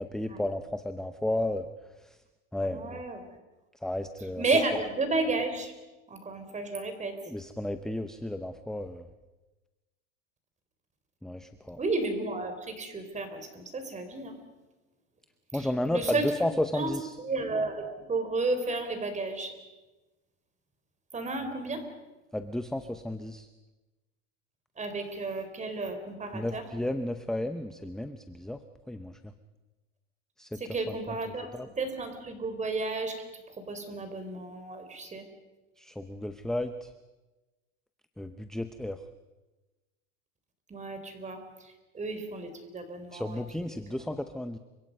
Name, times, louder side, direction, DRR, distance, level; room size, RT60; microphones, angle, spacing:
voice 1, 0.0-1.7 2.0-2.2 2.5-3.0 3.8-4.4 7.3-9.1 11.2-11.8 15.5-16.1 16.4-17.2 22.3-23.5 26.3-28.6 28.9-29.3 30.4-30.6 31.5-31.7 35.8-36.9 38.2-39.0 43.1-44.6, left 1 dB, ahead, 9 dB, 0.7 m, -33 dB
voice 2, 2.7-3.4 4.4-5.7 6.1-7.2 11.8-14.3 15.5-16.3 16.7-19.5 21.1-21.8 24.8-26.6 30.5-33.2 33.6-35.3 40.7-43.4 43.7-43.8, right 3 dB, 20° right, 7 dB, 4.2 m, -32 dB
30.0 x 25.0 x 5.5 m, 1.1 s
supercardioid pair, 135°, 37 cm